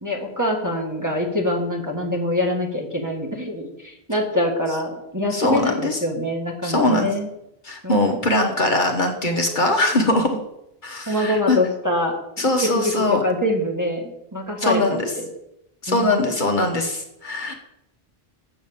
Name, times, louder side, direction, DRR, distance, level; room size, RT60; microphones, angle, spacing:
voice 1, 0.0-7.3 7.8-8.0 11.1-15.3 15.9-16.2, left 1 dB, 15° right, 1 dB, 1.6 m, -25 dB
voice 2, 5.3-6.0 6.6-7.1 7.6-10.4 10.8-11.6 12.4-13.2 14.6-15.1 15.8-17.5, left 2 dB, 50° left, 3 dB, 1.3 m, -21 dB
7.9 x 6.2 x 7.1 m, 0.83 s
omnidirectional pair, 1.1 m